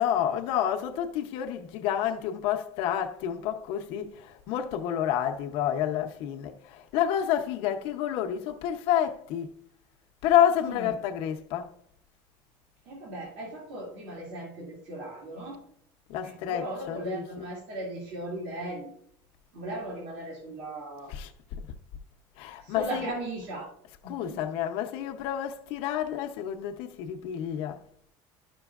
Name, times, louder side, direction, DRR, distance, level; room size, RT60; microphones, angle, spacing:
voice 1, 0.0-9.5 10.2-11.7 16.1-17.5 21.1-21.3 22.4-23.1 24.0-27.8, left 10 dB, 60° left, 0.7 m, -29 dB
voice 2, 12.9-15.6 16.2-18.9 19.5-21.1 22.6-23.7 24.0-24.4, right 1 dB, 85° right, 2.3 m, -37 dB
12.0 x 6.1 x 2.4 m
cardioid pair, 170°, 10 cm